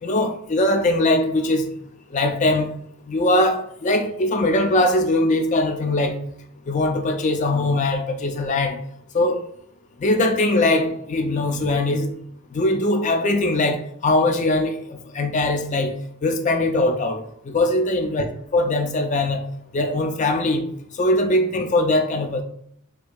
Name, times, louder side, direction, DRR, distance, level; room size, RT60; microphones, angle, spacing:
voice 1, 0.0-1.7 2.1-2.7 3.1-6.2 6.7-8.8 9.1-9.4 10.0-12.1 12.5-15.9 16.2-18.2 18.5-19.5 19.7-20.6 20.9-22.4, left 2 dB, 35° left, 5 dB, 0.3 m, -21 dB
4.5 x 2.6 x 2.3 m, 0.70 s
head